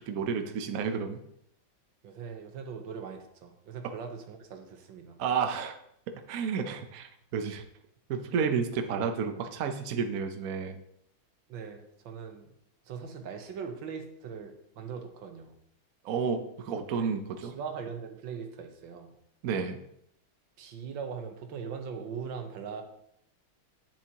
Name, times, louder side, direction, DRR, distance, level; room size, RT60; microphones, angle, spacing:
voice 1, 0.1-1.2 5.2-5.8 6.3-7.6 8.1-10.8 16.0-17.6 19.4-19.8, right 6 dB, 60° right, 5 dB, 1.0 m, -31 dB
voice 2, 2.0-5.2 11.5-12.5 12.9-15.5 16.9-19.1 20.6-22.8, right 6 dB, 75° right, 5 dB, 1.7 m, -40 dB
10.0 x 7.4 x 2.9 m, 0.74 s
omnidirectional pair, 2.2 m